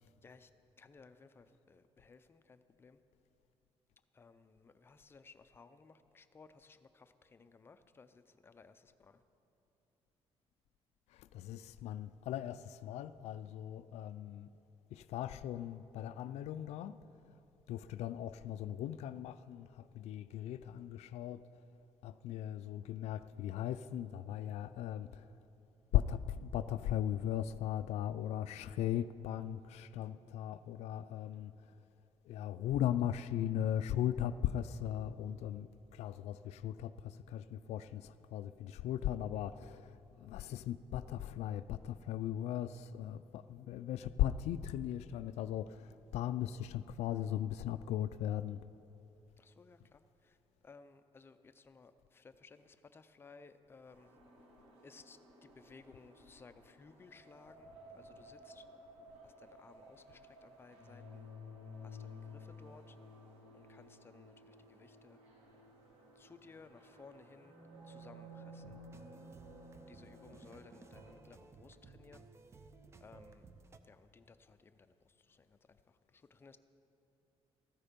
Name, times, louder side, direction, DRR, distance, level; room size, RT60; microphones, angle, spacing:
voice 1, 0.8-3.0 4.1-9.2 49.4-50.4 50.6-54.2 54.8-58.7 59.2-61.3 61.8-63.0 63.5-65.2 66.1-67.6 67.8-68.8 69.9-72.3 73.0-73.5 73.8-76.6, left 4 dB, 20° left, 10 dB, 0.5 m, -59 dB
voice 2, 11.1-14.5 14.9-17.0 17.7-21.5 22.0-25.4 25.9-31.7 32.2-48.6, left 11 dB, 80° left, 12 dB, 0.4 m, -38 dB
sound 1, 53.9-71.1, left 1 dB, 65° right, 3.0 m, -55 dB
sound 2, 68.6-73.8, right 3 dB, 25° right, 0.6 m, -57 dB
14.5 x 13.0 x 5.2 m, 3.0 s
cardioid pair, 165°, 11 cm